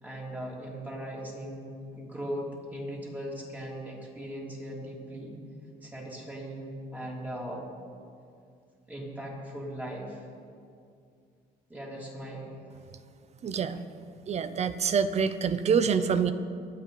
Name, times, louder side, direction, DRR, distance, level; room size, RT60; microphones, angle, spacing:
voice 1, 0.0-5.4 5.8-7.7 8.9-10.3 11.7-12.6 13.7-13.9, equal, 10° right, -3 dB, 3.4 m, -39 dB
voice 2, 13.4-13.8 14.3-16.3, right 6 dB, 40° right, 12 dB, 0.8 m, -26 dB
24.0 x 8.5 x 4.0 m, 2.3 s
cardioid pair, 110°, 17 cm